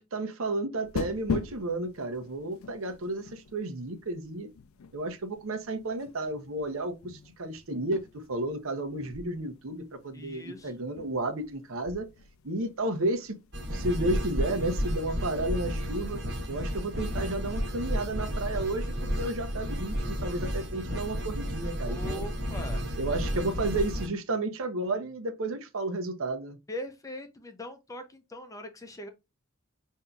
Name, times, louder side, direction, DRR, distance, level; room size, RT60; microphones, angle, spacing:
voice 1, 0.0-4.5 4.9-12.1 12.4-13.4 13.7-16.2 16.5-22.3 23.0-26.6, right 2 dB, 75° right, 0.8 m, -32 dB
sound 1, 0.8-20.5, left 5 dB, 80° left, 0.4 m, -44 dB
voice 2, 10.1-10.7 21.8-22.9 23.3-23.5 26.7-29.1, left 1 dB, 15° left, 0.6 m, -41 dB
sound 2, 13.5-24.1, equal, 55° right, 1.1 m, -32 dB
5.3 x 2.7 x 2.3 m
head